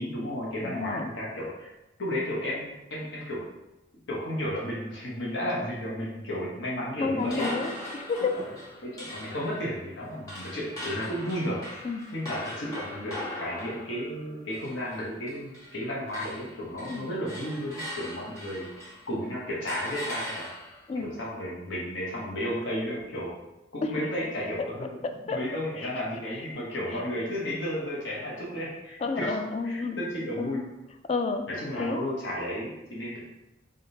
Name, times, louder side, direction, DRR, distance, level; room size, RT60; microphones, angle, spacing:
voice 1, 0.0-1.7 2.0-3.4 4.1-7.5 8.3-8.5 8.8-11.6 12.1-18.6 19.1-20.5 20.9-23.3 23.7-25.0 25.2-29.4 29.6-30.7 31.5-33.2, equal, 70° left, -5 dB, 1.0 m, -33 dB
voice 2, 0.6-1.1 7.0-8.4 11.8-12.0 16.9-17.1 20.9-21.1 23.8-24.1 25.0-25.4 25.8-25.9 29.0-30.0 30.4-30.6 31.1-31.5 31.8-32.0, left 4 dB, 35° left, 6 dB, 0.3 m, -30 dB
sound 1, 7.2-15.8 16.1-19.1 19.7-20.9, left 1 dB, 20° left, 1.2 m, -40 dB
3.7 x 3.5 x 2.7 m, 0.98 s
head